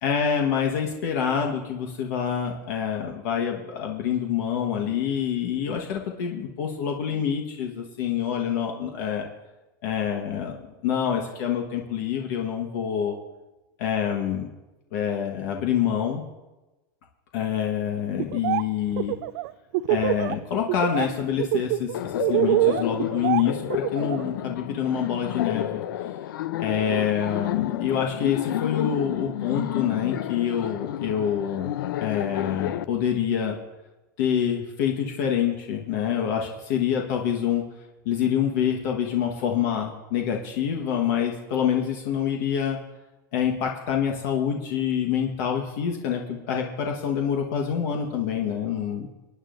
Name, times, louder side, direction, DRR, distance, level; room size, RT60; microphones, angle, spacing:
voice 1, 0.0-9.3 9.8-13.2 13.8-14.5 14.9-16.2 17.3-19.1 19.9-25.8 26.6-31.7 32.0-33.6 34.2-37.6 38.0-42.8 43.3-49.1, left 8 dB, 60° left, 1 dB, 1.4 m, -26 dB
Laughter, 18.2-18.6 18.9-20.3 20.7-21.1 21.4-24.2, right 17 dB, 55° right, 0.4 m, -24 dB
Laughter 2, 21.9-32.8, left 12 dB, 80° left, 0.6 m, -30 dB
26.5 x 9.4 x 2.6 m, 1.1 s
supercardioid pair, 145°, 11 cm